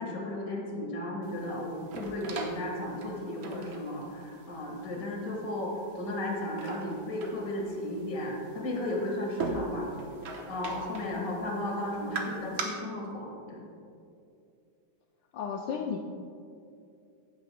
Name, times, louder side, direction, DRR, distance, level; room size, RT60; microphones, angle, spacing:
voice 1, 0.0-9.9 10.3-13.6, left 1 dB, 45° left, -1 dB, 2.1 m, -34 dB
sound 1, 1.2-12.6, right 3 dB, 85° right, 1.8 m, -41 dB
voice 2, 15.3-16.0, left 6 dB, 75° left, 2 dB, 1.2 m, -35 dB
16.0 x 8.9 x 2.2 m, 2.5 s
omnidirectional pair, 2.1 m